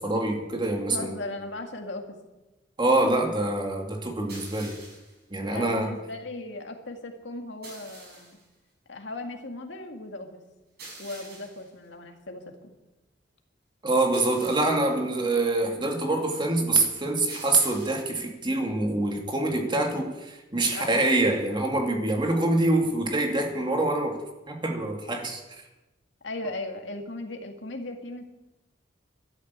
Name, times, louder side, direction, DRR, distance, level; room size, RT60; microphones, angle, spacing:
voice 1, 0.0-1.1 2.8-4.8 5.3-5.9 13.8-24.2 24.5-25.4, right 2 dB, 25° right, 2 dB, 2.3 m, -25 dB
voice 2, 0.9-2.1 5.5-8.4 8.9-10.4 11.0-12.4 20.7-21.2 26.2-28.2, left 2 dB, 70° left, 4 dB, 2.1 m, -37 dB
sound 1, 4.3-5.2 7.6-8.5 10.8-11.7 14.1-15.0 17.3-18.2 20.6-21.5, right 2 dB, 60° right, 6.3 m, -46 dB
12.5 x 10.5 x 8.3 m, 1.0 s
head